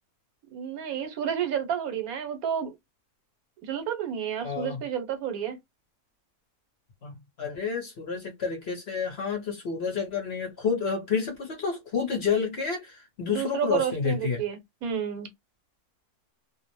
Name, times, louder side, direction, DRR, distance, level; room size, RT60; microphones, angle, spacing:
voice 1, 0.5-2.7 3.7-5.6 13.3-15.3, right 8 dB, 75° right, 1.2 m, -30 dB
voice 2, 4.4-4.8 7.0-14.4, left 5 dB, 50° left, 0.9 m, -29 dB
2.6 x 2.0 x 2.9 m
omnidirectional pair, 1.6 m